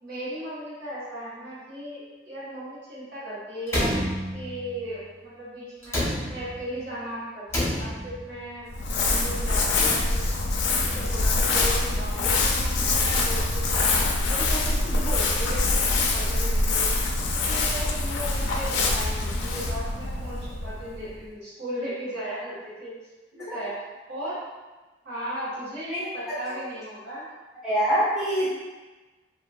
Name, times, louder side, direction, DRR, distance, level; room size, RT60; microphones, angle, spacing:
voice 1, 0.0-4.0 4.3-6.0 6.3-14.0 14.3-16.9 17.5-22.9 23.5-23.7 24.1-24.4 25.0-27.3, equal, 65° right, -10 dB, 1.2 m, -36 dB
Slam, 3.7-4.8 5.8-6.8 7.5-8.4 9.5-10.5, left 1 dB, 15° left, 0.7 m, -29 dB
Crumpling crinkling, 8.7-21.2, left 3 dB, 70° left, 0.4 m, -24 dB
voice 2, 27.6-28.5, equal, 5° right, -11 dB, 1.0 m, -24 dB
2.9 x 2.3 x 2.3 m, 1.2 s
head